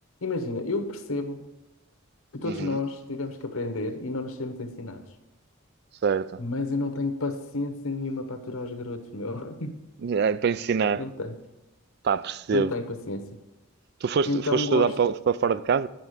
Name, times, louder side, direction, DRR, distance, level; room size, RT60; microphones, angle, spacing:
voice 1, 0.2-1.5 2.3-5.0 6.4-9.8 10.9-11.3 12.5-13.3 14.2-15.0, left 2 dB, 80° left, 1.1 m, -31 dB
voice 2, 2.4-2.8 6.0-6.4 10.0-11.0 12.0-12.7 14.0-15.9, right 6 dB, 50° right, 0.3 m, -24 dB
9.2 x 5.9 x 6.6 m
head